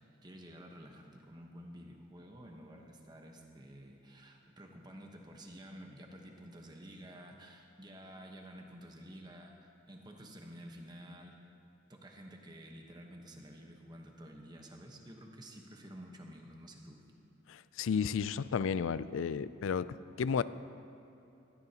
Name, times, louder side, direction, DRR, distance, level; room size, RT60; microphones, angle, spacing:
voice 1, 0.0-11.4 11.9-17.0, equal, 20° right, 2 dB, 1.1 m, -51 dB
voice 2, 17.5-20.4, left 6 dB, 85° left, 16 dB, 0.4 m, -33 dB
16.5 x 14.5 x 2.9 m, 2.9 s
head